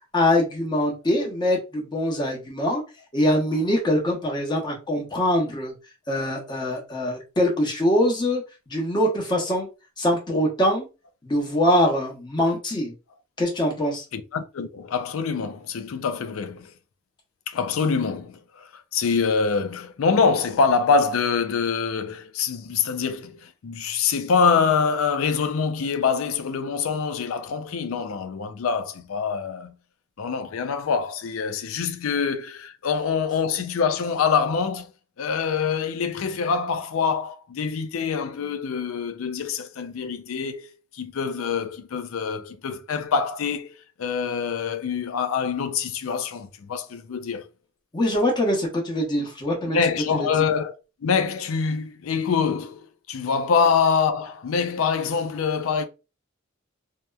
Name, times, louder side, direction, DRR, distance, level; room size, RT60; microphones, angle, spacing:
voice 1, 0.1-2.8 3.1-5.7 6.1-9.7 10.0-10.9 11.2-12.9 13.4-14.0 47.9-49.8 50.1-50.3, left 1 dB, 20° left, 0.8 m, -23 dB
voice 2, 14.1-16.7 17.5-29.8 30.2-34.9 35.2-40.7 40.9-47.5 49.7-55.9, left 5 dB, 85° left, 0.4 m, -25 dB
2.8 x 2.1 x 2.2 m
head